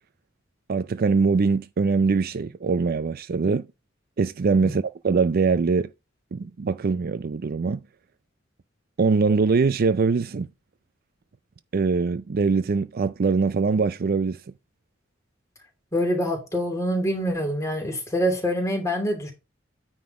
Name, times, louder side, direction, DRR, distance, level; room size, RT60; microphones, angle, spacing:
voice 1, 0.7-3.7 4.2-5.9 6.3-7.8 9.0-10.5 11.7-14.4, right 4 dB, 50° right, 0.4 m, -22 dB
voice 2, 15.9-19.3, equal, 15° left, 2.8 m, -25 dB
9.4 x 4.1 x 4.8 m
head